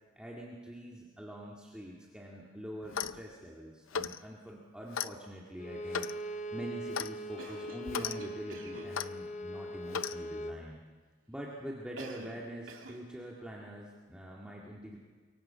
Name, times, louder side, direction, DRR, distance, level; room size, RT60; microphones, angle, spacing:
voice 1, 0.2-10.8 11.3-15.0, equal, 5° right, -3 dB, 2.1 m, -45 dB
Clock, 2.8-3.2 3.9-4.2 4.9-5.1 5.9-6.2 6.9-7.1 7.9-8.2 8.9-9.1 9.9-10.2, left 7 dB, 85° left, 0.7 m, -35 dB
Bowed string instrument, 5.6-10.6, equal, 35° left, 0.8 m, -41 dB
Cough, 7.4-8.9 12.0-12.4 12.7-13.0, right 3 dB, 80° right, 3.1 m, -47 dB
26.5 x 23.0 x 5.8 m, 1.5 s
head